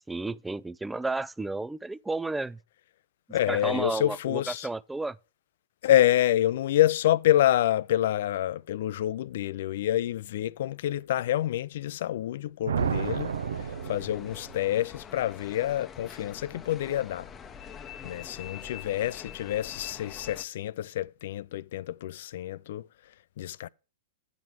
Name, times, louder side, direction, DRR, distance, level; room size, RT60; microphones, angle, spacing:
voice 1, 0.1-2.6 3.5-5.2, right 2 dB, 5° right, 0.3 m, -32 dB
voice 2, 3.3-4.7 5.8-13.3 13.9-17.3 18.0-22.8 23.4-23.7, left 13 dB, 65° left, 0.4 m, -27 dB
sound 1, 12.7-14.6, right 7 dB, 80° right, 0.6 m, -31 dB
sound 2, 12.8-20.4, left 8 dB, 25° left, 0.8 m, -45 dB
9.5 x 5.2 x 5.9 m
hypercardioid pair, 115°, 0 cm